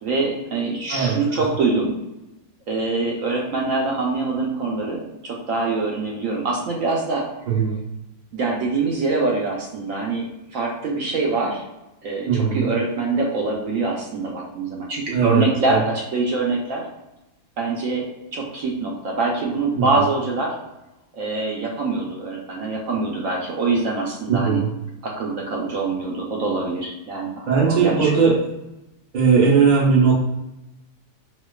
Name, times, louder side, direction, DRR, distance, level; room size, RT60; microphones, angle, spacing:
voice 1, 0.0-2.0 2.7-7.2 8.3-11.6 12.0-16.8 17.6-18.1 18.3-20.5 21.1-24.6 25.0-28.1, right 3 dB, 70° right, -1 dB, 0.8 m, -24 dB
voice 2, 7.5-7.8 12.2-12.7 15.1-15.8 19.7-19.8 24.3-24.7 27.5-28.4 29.1-30.1, right 5 dB, 55° right, -3 dB, 0.5 m, -18 dB
4.2 x 2.3 x 2.3 m, 0.94 s
omnidirectional pair, 1.7 m